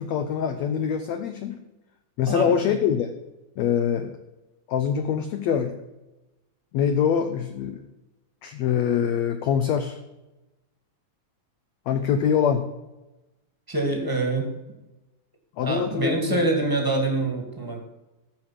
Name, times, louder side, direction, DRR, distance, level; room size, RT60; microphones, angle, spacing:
voice 1, 0.0-1.6 2.2-3.1 3.6-4.2 4.7-5.8 6.7-7.8 8.4-10.0 11.9-12.7 15.6-16.5, left 8 dB, 80° left, 8 dB, 1.6 m, -24 dB
voice 2, 13.7-14.5 15.6-17.8, right 2 dB, 10° right, 2 dB, 1.3 m, -25 dB
13.5 x 4.9 x 7.4 m, 1.0 s
omnidirectional pair, 3.9 m